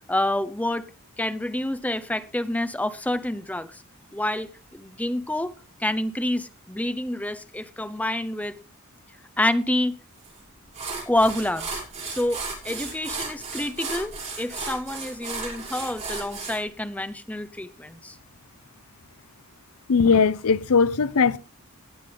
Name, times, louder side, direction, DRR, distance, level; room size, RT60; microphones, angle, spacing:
voice 1, 0.1-0.9 1.2-3.8 4.1-5.5 5.8-8.5 9.4-9.9 11.1-18.2, left 1 dB, 5° left, 0.7 m, -28 dB
sound 1, 10.2-10.4 10.7-16.6, right 4 dB, 30° right, 6.6 m, -34 dB
voice 2, 19.9-21.4, left 5 dB, 75° left, 0.6 m, -19 dB
19.0 x 7.6 x 3.4 m
head